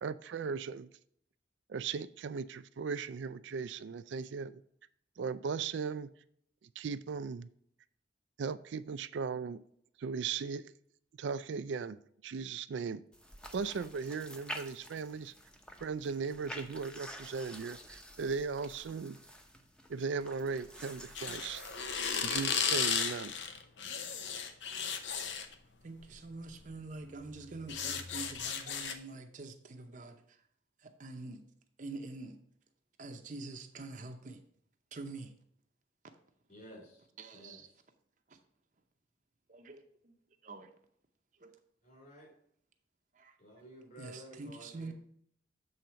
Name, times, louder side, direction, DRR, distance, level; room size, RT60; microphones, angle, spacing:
voice 1, 0.0-0.9 1.7-4.6 5.2-6.1 6.8-7.5 8.4-9.6 10.0-10.7 11.2-12.0 12.2-13.0 13.5-15.3 15.8-19.2 19.9-21.6 22.2-23.3, right 5 dB, 80° right, 14 dB, 0.4 m, -37 dB
sound 1, 13.1-23.0, equal, 5° left, 0.7 m, -49 dB
sound 2, 21.1-25.5 26.5-26.7 27.1-28.9, left 6 dB, 80° left, 0.8 m, -35 dB
voice 2, 25.8-30.4 30.8-31.5 31.8-32.4 33.0-34.4 34.9-35.3 37.2-37.7 38.3-38.4 39.5-40.1 40.4-40.7 41.4-41.6 43.1-43.4 44.0-44.9, right 3 dB, 45° right, 5 dB, 0.7 m, -46 dB
voice 3, 36.5-37.1 37.3-37.6 41.8-42.3 43.4-44.9, right 1 dB, 45° left, -1 dB, 3.6 m, -53 dB
7.7 x 3.9 x 5.6 m, 0.67 s
head